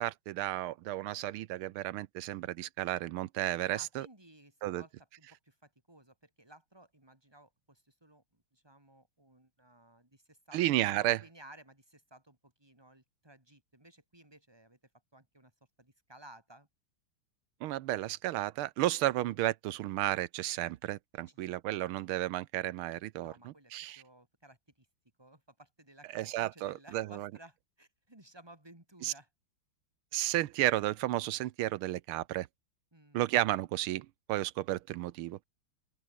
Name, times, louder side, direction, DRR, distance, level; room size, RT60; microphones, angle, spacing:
voice 1, 0.0-4.1 4.6-4.8 10.5-11.2 17.6-24.0 26.1-27.3 29.0-29.1 30.1-32.5 33.1-35.4, right 15 dB, 90° right, 1.6 m, -33 dB
voice 2, 3.7-4.9 5.2-14.8 15.1-15.5 15.8-16.7 21.3-21.6 23.2-24.9 25.2-29.3 32.9-33.3, right 1 dB, 10° right, 4.1 m, -57 dB
open air
omnidirectional pair, 2.3 m